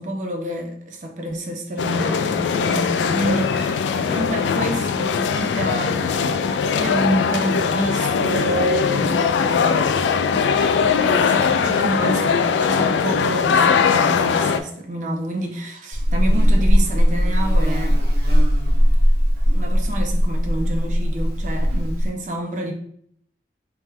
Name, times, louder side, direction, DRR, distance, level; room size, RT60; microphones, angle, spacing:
voice 1, 0.0-9.7 10.6-18.0 19.5-22.7, right 1 dB, 45° right, 0.6 m, -28 dB
sound 1, 1.8-14.6, left 6 dB, 85° left, 0.3 m, -20 dB
Buzz, 15.9-22.1, equal, 65° right, 1.0 m, -18 dB
3.5 x 3.0 x 3.1 m
head